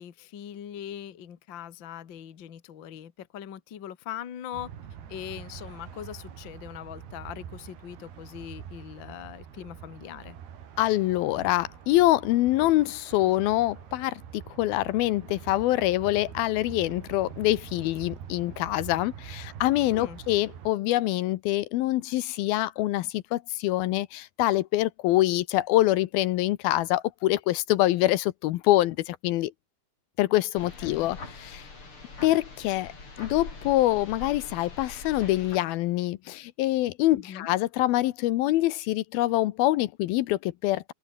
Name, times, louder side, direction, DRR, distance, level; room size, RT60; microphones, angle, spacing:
voice 1, 0.0-4.7 5.1-10.4 19.9-20.2 30.8-31.1 37.1-37.5, left 10 dB, 50° left, 1.4 m, -41 dB
sound 1, 4.5-20.7, right 8 dB, 80° right, 4.8 m, -45 dB
voice 2, 10.8-29.5 30.2-31.7 32.2-32.9 33.2-40.9, left 16 dB, 75° left, 2.6 m, -25 dB
sound 2, 30.5-35.6, left 3 dB, 35° left, 6.1 m, -43 dB
open air
omnidirectional pair, 4.5 m